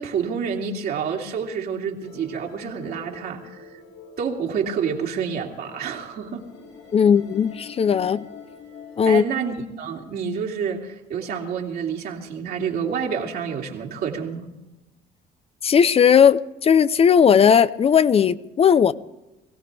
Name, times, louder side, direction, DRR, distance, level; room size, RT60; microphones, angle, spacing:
voice 1, 0.0-3.7 4.2-6.5 9.0-14.5, right 6 dB, 65° right, 0 dB, 2.6 m, -28 dB
sound 1, 2.0-9.2, left 5 dB, 90° left, 2.5 m, -45 dB
voice 2, 6.9-8.2 9.0-9.2 15.6-18.9, left 7 dB, 35° left, 14 dB, 0.5 m, -17 dB
23.0 x 16.5 x 3.4 m, 1.0 s
cardioid pair, 110°, 17 cm